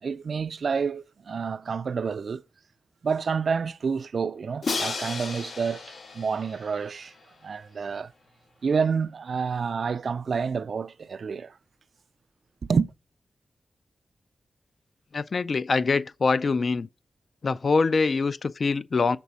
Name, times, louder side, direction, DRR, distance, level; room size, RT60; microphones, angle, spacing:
voice 1, 0.0-2.4 3.0-7.1 7.4-8.1 8.6-11.6 12.7-12.9, right 5 dB, 65° right, 0.3 m, -28 dB
Crash cymbal, 4.6-7.6, left 4 dB, 75° left, 0.9 m, -34 dB
voice 2, 15.1-16.9 17.4-19.2, left 4 dB, 55° left, 0.3 m, -24 dB
6.0 x 4.1 x 5.4 m
wide cardioid pair, 110°, 0 cm